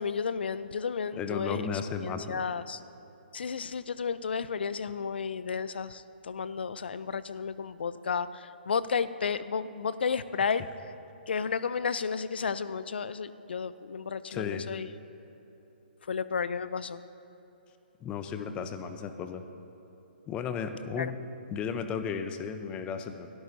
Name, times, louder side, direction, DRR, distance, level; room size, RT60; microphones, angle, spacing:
voice 1, 0.0-1.7 2.0-2.8 3.3-10.6 11.3-14.9 16.1-17.0 21.0-21.1, left 6 dB, 70° left, 15 dB, 0.5 m, -32 dB
voice 2, 1.2-2.4 14.3-14.6 18.0-19.4 20.3-21.2 21.5-23.3, left 6 dB, 20° left, 8 dB, 0.7 m, -34 dB
22.5 x 13.0 x 2.7 m, 3.0 s
hypercardioid pair, 135°, 6 cm